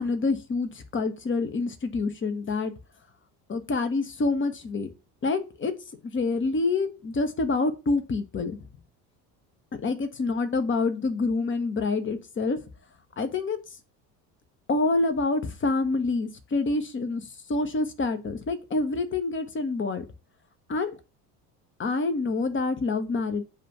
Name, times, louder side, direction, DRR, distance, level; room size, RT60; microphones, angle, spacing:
voice 1, 0.0-2.7 3.5-4.9 5.2-5.7 6.0-8.6 9.8-12.6 13.2-13.6 14.7-20.0 20.7-21.0 21.8-23.4, left 3 dB, 25° left, 9 dB, 1.0 m, -27 dB
7.5 x 2.5 x 5.7 m, 0.30 s
figure-of-eight pair, 60°, 49 cm